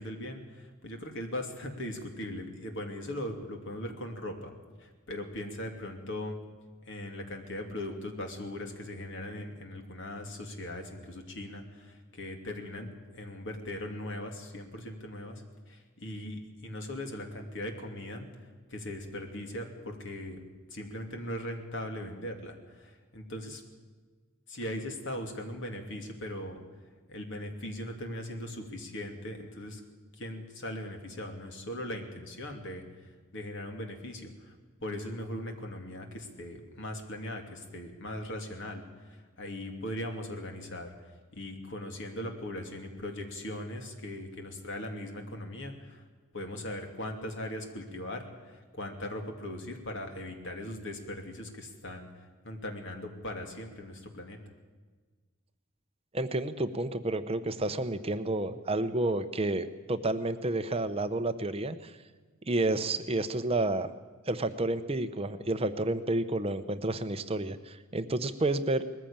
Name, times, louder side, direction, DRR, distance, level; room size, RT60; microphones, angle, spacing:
voice 1, 0.0-4.5 4.8-6.4 6.9-12.9 13.1-18.3 18.7-20.4 20.7-23.6 24.5-26.6 27.1-29.8 30.2-32.8 33.3-34.5 34.8-40.9 41.3-46.0 46.3-52.1 52.4-54.4, left 1 dB, 55° left, 4 dB, 2.8 m, -39 dB
voice 2, 56.1-62.0 62.5-63.9 64.3-68.8, right 2 dB, 25° right, 10 dB, 0.7 m, -30 dB
20.0 x 15.0 x 8.8 m, 1.4 s
head